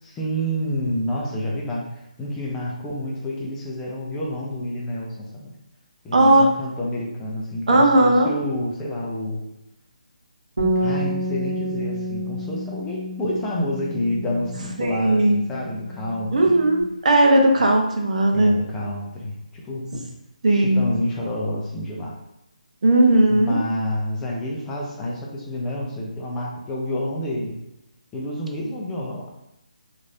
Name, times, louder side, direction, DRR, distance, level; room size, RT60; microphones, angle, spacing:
voice 1, 0.0-5.5 6.0-9.4 10.8-16.6 18.3-20.0 20.5-22.1 23.3-27.6 28.1-29.3, left 1 dB, 10° left, -4 dB, 0.5 m, -28 dB
voice 2, 6.1-6.5 7.7-8.3 14.8-15.4 16.3-18.5 20.4-20.9 22.8-23.6, right 1 dB, 60° right, 2 dB, 0.6 m, -17 dB
Bass guitar, 10.6-16.8, equal, 90° right, 0.9 m, -29 dB
3.1 x 2.5 x 2.5 m, 0.89 s
hypercardioid pair, 160°, 4 cm